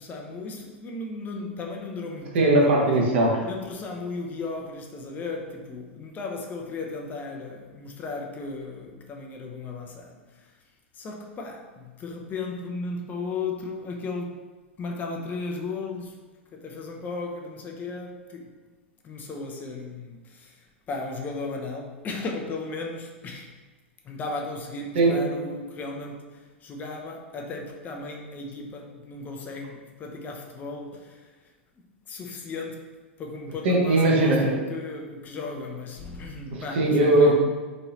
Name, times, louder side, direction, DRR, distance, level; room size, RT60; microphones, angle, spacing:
voice 1, 0.0-2.6 3.4-10.5 10.9-14.5 14.8-16.2 16.5-18.5 19.0-23.5 24.0-31.3 32.1-32.9 33.2-37.3, left 3 dB, 25° left, 0.4 m, -35 dB
voice 2, 2.3-3.4 24.9-25.2 33.6-34.5 36.5-37.3, right 2 dB, 60° right, 0.8 m, -19 dB
3.1 x 2.7 x 2.7 m
figure-of-eight pair, 95°, 7 cm